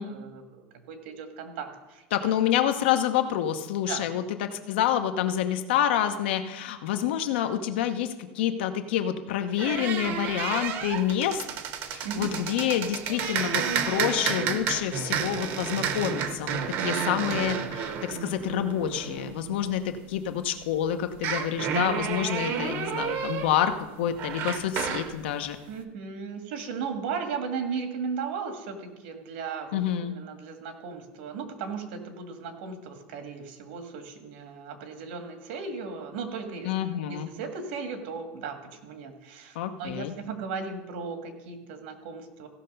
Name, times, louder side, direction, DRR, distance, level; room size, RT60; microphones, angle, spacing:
voice 1, 0.0-2.0 2.4-2.5 3.9-4.1 12.0-12.3 25.7-36.7 37.1-42.5, right 5 dB, 80° right, 6 dB, 1.7 m, -36 dB
voice 2, 2.1-11.4 11.9-25.6 29.7-30.2 36.6-37.3 39.5-40.1, left 10 dB, 80° left, 8 dB, 0.9 m, -28 dB
sound 1, 9.6-20.0 21.1-25.1, right 7 dB, 40° right, 0.8 m, -31 dB
16.0 x 5.7 x 5.4 m, 1.1 s
supercardioid pair, 175°, 6 cm